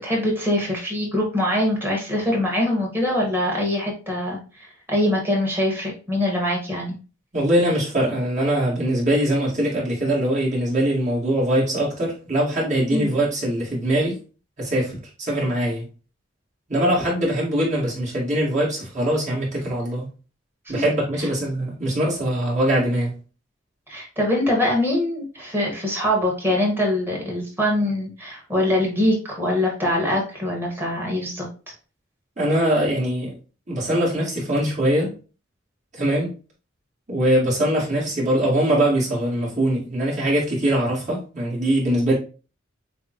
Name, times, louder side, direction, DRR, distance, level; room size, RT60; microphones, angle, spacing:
voice 1, 0.0-7.0 12.9-13.1 20.7-20.8 23.9-31.5, left 1 dB, 10° right, 1.5 m, -23 dB
voice 2, 7.3-14.2 14.6-15.9 16.7-20.1 20.7-23.1 32.4-33.4 33.7-35.1 35.9-36.4 37.1-42.1, right 1 dB, 35° right, 1.9 m, -22 dB
6.8 x 2.3 x 3.0 m
head